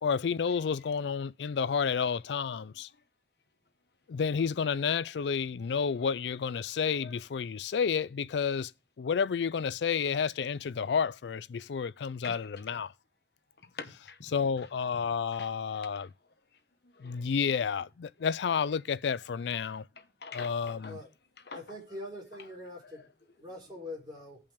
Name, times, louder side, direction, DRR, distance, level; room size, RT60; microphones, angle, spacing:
voice 1, 0.0-2.9 4.1-8.7 9.0-12.9 14.3-16.1 17.0-19.8 20.3-21.0, left 6 dB, 80° left, 0.4 m, -30 dB
voice 2, 12.2-12.6 13.6-14.3 15.3-16.1 16.8-17.3 18.2-18.3 20.0-21.0 21.4-21.6 21.9-22.0 22.9-23.0, left 4 dB, 60° left, 1.0 m, -47 dB
voice 3, 21.5-24.4, left 1 dB, 25° right, 3.8 m, -44 dB
15.5 x 5.4 x 3.4 m
head